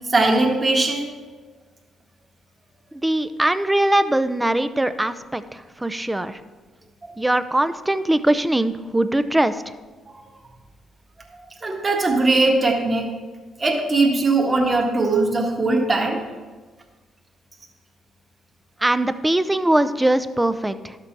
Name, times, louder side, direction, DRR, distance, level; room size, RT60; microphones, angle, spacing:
voice 1, 0.1-1.1 11.6-13.1 13.6-16.2, right 2 dB, 30° right, 0 dB, 1.7 m, -20 dB
voice 2, 3.0-6.4 7.2-9.6 18.8-21.0, right 1 dB, 10° right, 12 dB, 0.5 m, -21 dB
12.0 x 6.8 x 4.7 m, 1.4 s
cardioid pair, 90°, 0 cm